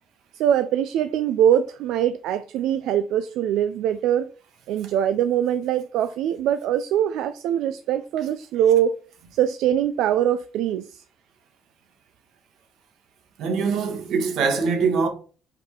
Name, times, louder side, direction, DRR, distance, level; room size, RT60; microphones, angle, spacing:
voice 1, 0.3-4.3 4.7-8.9 9.3-11.0, right 10 dB, 85° right, 0.4 m, -22 dB
voice 2, 13.4-15.1, right 5 dB, 70° right, 1.4 m, -23 dB
5.2 x 4.2 x 4.4 m
cardioid pair, 145°, 0 cm